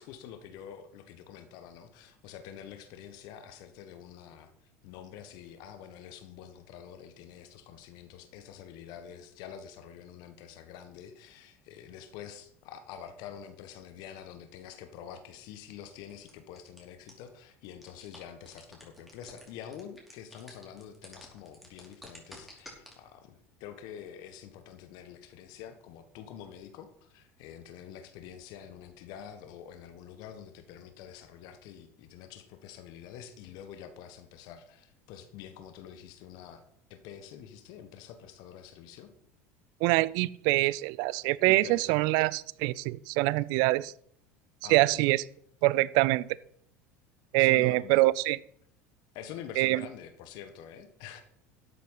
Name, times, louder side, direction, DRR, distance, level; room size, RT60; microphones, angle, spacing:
voice 1, 0.0-4.5 4.8-36.6 36.9-39.1 41.4-41.9 44.6-45.0 47.4-48.0 49.1-51.2, left 9 dB, 60° left, 9 dB, 1.5 m, -47 dB
sound 1, 16.1-16.8 17.1-17.2 17.5-22.9, equal, ahead, 4.9 m, -49 dB
voice 2, 39.8-43.9 44.7-45.2 45.6-46.3 47.3-48.4 49.6-49.8, right 20 dB, 65° right, 21 dB, 0.5 m, -25 dB
12.5 x 8.4 x 5.6 m, 0.67 s
hypercardioid pair, 85°, 8 cm